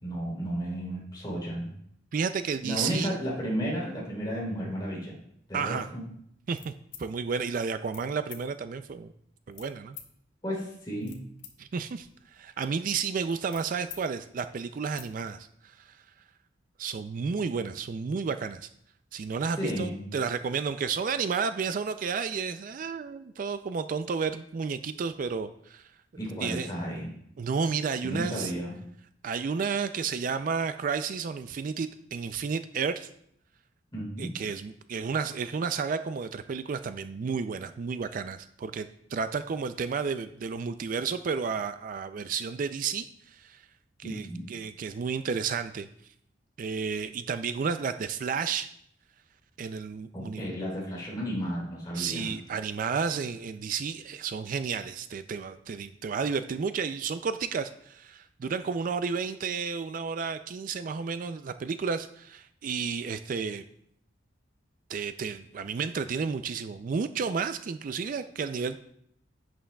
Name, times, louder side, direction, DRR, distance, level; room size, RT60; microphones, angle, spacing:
voice 1, 0.0-1.7 2.6-5.2 5.5-6.1 10.4-11.2 19.6-20.1 26.2-27.1 28.0-28.8 33.9-34.3 44.0-44.5 50.1-52.3, equal, 25° left, -4 dB, 3.2 m, -33 dB
voice 2, 2.1-3.2 5.5-5.9 6.5-6.7 7.0-9.1 9.5-10.0 11.6-16.0 16.8-18.7 19.1-25.9 26.4-26.7 27.4-28.5 29.2-33.1 34.2-43.7 44.0-45.9 46.6-48.7 49.6-50.5 51.9-63.6 64.9-68.8, right 5 dB, 45° right, 11 dB, 0.3 m, -32 dB
sound 1, 6.5-7.1 7.8-8.0 8.3-8.4 9.5-10.1 10.8-11.5 11.9-14.0 14.4-14.5 14.8-15.1, left 9 dB, 80° left, 1.2 m, -48 dB
11.0 x 8.7 x 2.3 m, 0.72 s
head